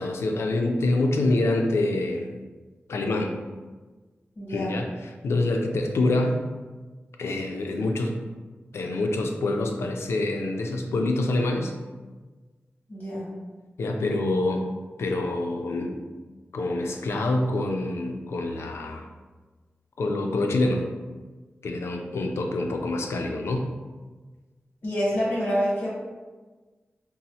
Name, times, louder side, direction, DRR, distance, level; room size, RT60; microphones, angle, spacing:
voice 1, 0.0-2.3 2.9-3.3 4.5-4.9 5.2-6.4 7.2-8.2 8.7-11.7 13.8-14.6 15.0-16.0 16.5-19.1 20.0-20.9 21.6-23.7, left 2 dB, 85° left, 3 dB, 0.4 m, -26 dB
voice 2, 4.4-4.7 12.9-13.3 24.8-25.9, equal, 40° left, -7 dB, 1.0 m, -27 dB
3.9 x 2.0 x 2.8 m, 1.3 s
wide cardioid pair, 135°, 4 cm